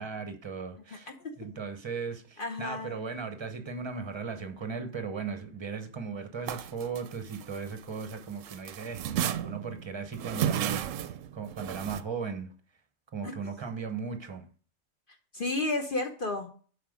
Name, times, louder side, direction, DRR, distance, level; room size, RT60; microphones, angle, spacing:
voice 1, 0.0-1.1 1.4-12.5 13.1-14.5, right 5 dB, 25° right, 0.8 m, -37 dB
voice 2, 2.4-3.0 13.2-13.3 15.3-16.5, left 2 dB, 45° left, 1.0 m, -32 dB
sound 1, 6.4-8.1 8.4-12.0, right 10 dB, 75° right, 0.9 m, -33 dB
7.6 x 5.2 x 5.0 m
omnidirectional pair, 1.4 m